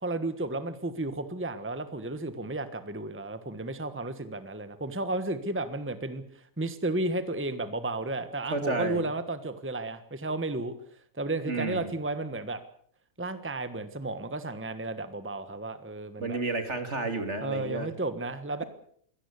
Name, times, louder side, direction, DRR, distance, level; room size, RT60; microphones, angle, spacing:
voice 1, 0.0-10.7 11.1-12.6 13.2-16.4 17.4-18.6, right 2 dB, 10° right, 11 dB, 1.3 m, -33 dB
voice 2, 8.5-9.0 11.5-11.9 16.2-17.9, right 3 dB, 60° right, 8 dB, 3.2 m, -31 dB
23.0 x 17.5 x 8.3 m, 0.62 s
omnidirectional pair, 1.4 m